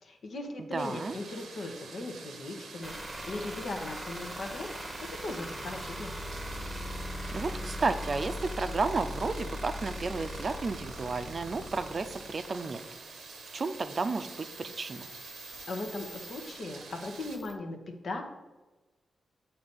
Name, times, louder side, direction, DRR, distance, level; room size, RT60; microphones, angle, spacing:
voice 1, 0.0-4.7 5.2-6.1 15.7-17.8 18.0-18.2, left 2 dB, 65° left, 4 dB, 1.0 m, -38 dB
voice 2, 0.6-1.2 7.3-12.8 13.5-15.1, right 3 dB, 50° right, 10 dB, 0.4 m, -32 dB
sound 1, 0.8-17.4, right 5 dB, 85° right, 0.7 m, -48 dB
sound 2, 2.8-17.5, equal, 15° right, 0.9 m, -41 dB
8.0 x 2.8 x 5.2 m, 1.2 s
cardioid pair, 55°, 0 cm